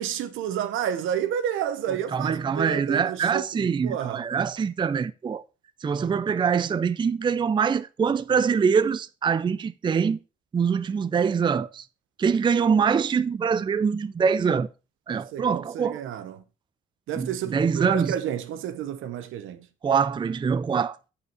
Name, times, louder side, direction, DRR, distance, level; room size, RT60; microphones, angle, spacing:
voice 1, 0.0-4.2 15.1-16.4 17.1-19.7, right 9 dB, 85° right, 1.0 m, -30 dB
voice 2, 2.1-5.4 5.8-10.2 10.5-11.8 12.2-14.7 15.1-16.0 17.2-18.1 19.8-21.0, right 6 dB, 25° right, 0.4 m, -24 dB
7.9 x 4.9 x 4.7 m
cardioid pair, 90°, 20 cm